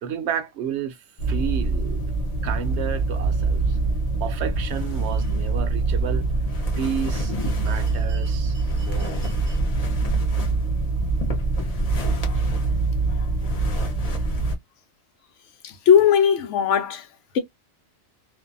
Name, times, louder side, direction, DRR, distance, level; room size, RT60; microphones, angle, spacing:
voice 1, 0.0-2.1 2.4-3.8 4.2-6.3 6.8-9.6, right 8 dB, 75° right, 0.9 m, -32 dB
sound 1, 1.2-14.5, right 3 dB, 40° left, 0.7 m, -24 dB
voice 2, 15.6-17.1, left 8 dB, 90° left, 1.0 m, -19 dB
2.6 x 2.1 x 2.5 m
omnidirectional pair, 1.2 m